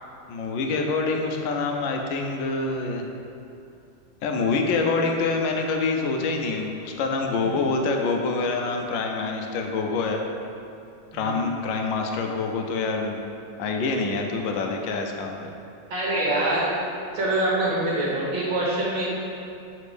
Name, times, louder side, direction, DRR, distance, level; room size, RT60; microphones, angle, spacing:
voice 1, 0.3-3.1 4.2-10.2 11.1-13.2 13.6-15.5, left 3 dB, 75° left, 2 dB, 1.3 m, -26 dB
voice 2, 15.9-16.7 17.1-19.1, right 1 dB, 70° right, -6 dB, 1.9 m, -24 dB
6.5 x 4.1 x 5.0 m, 2.6 s
omnidirectional pair, 2.3 m